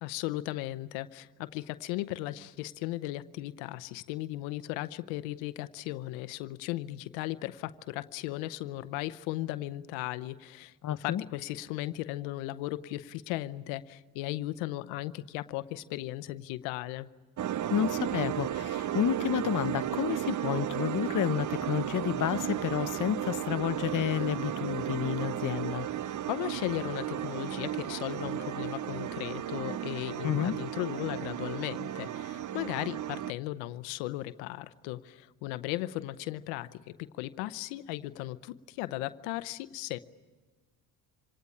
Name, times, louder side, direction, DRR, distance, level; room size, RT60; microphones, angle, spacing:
voice 1, 0.0-17.1 26.3-40.0, left 16 dB, 90° left, 0.8 m, -36 dB
voice 2, 10.8-11.2 17.7-25.9 30.2-30.5, left 10 dB, 45° left, 0.8 m, -30 dB
sound 1, 17.4-33.3, right 11 dB, 40° right, 0.7 m, -34 dB
26.5 x 18.5 x 9.9 m
supercardioid pair, 65°, 45 cm